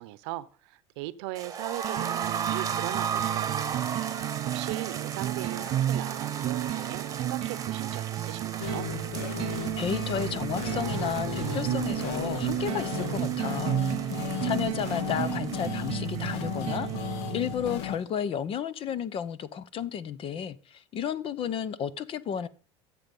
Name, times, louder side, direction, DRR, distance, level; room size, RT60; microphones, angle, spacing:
voice 1, 0.0-3.7 4.1-8.9, right 17 dB, 75° right, 0.9 m, -39 dB
sound 1, 1.3-17.2 17.5-17.6 17.9-18.0, right 7 dB, 25° right, 1.3 m, -36 dB
sound 2, 1.8-17.8, right 13 dB, 40° right, 0.5 m, -32 dB
sound 3, 8.6-18.0, left 8 dB, 75° left, 2.1 m, -35 dB
voice 2, 9.8-22.5, left 8 dB, 40° left, 1.0 m, -33 dB
14.5 x 7.7 x 5.5 m
supercardioid pair, 120°, 14 cm